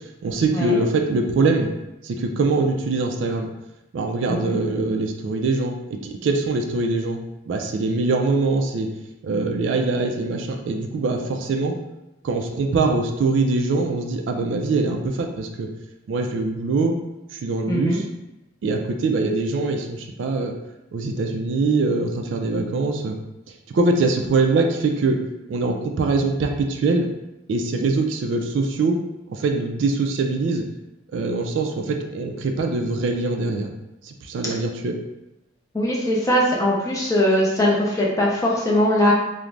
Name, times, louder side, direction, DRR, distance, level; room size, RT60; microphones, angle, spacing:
voice 1, 0.2-1.7 2.0-3.5 3.9-5.7 6.0-7.2 7.5-8.9 9.2-11.7 12.2-15.7 16.1-16.9 17.3-18.0 18.6-20.5 20.9-23.2 23.7-25.2 25.5-27.1 27.5-29.0 29.3-30.6 31.1-33.7 34.1-35.0, right 3 dB, 65° right, 4 dB, 0.3 m, -23 dB
voice 2, 17.7-18.0 35.7-39.1, left 1 dB, 15° left, -3 dB, 0.4 m, -20 dB
2.4 x 2.0 x 3.2 m, 0.93 s
head